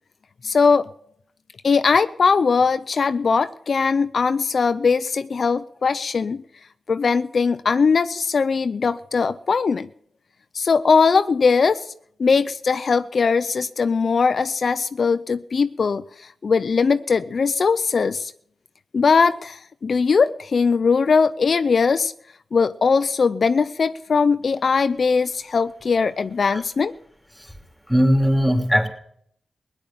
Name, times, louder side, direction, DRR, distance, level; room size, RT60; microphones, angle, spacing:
voice 1, 0.4-0.9 1.6-6.4 6.9-9.9 10.5-11.9 12.2-18.3 18.9-22.1 22.5-26.9, left 5 dB, 60° left, 12 dB, 0.5 m, -20 dB
voice 2, 27.9-28.9, equal, ahead, 4 dB, 3.0 m, -18 dB
16.5 x 10.0 x 7.3 m, 0.67 s
cardioid pair, 50°, 0 cm